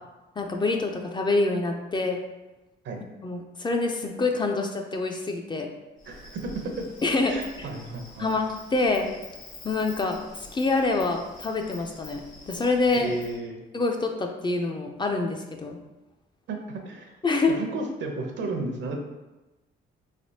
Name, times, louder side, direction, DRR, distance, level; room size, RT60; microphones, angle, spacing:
voice 1, 0.4-2.2 3.2-5.7 7.0-7.3 7.6-7.7 8.2-8.4 8.7-9.1 9.6-10.2 10.5-13.1 13.7-15.8 17.2-17.5, left 3 dB, 25° left, 3 dB, 0.3 m, -26 dB
Insect, 6.0-13.4, left 2 dB, 85° left, 1.2 m, -46 dB
voice 2, 6.1-6.8 7.2-8.3 12.9-13.6 16.5-17.1 17.6-19.0, right 2 dB, 70° right, 3 dB, 0.7 m, -33 dB
3.3 x 2.7 x 2.7 m, 1.1 s
cardioid pair, 90°, 20 cm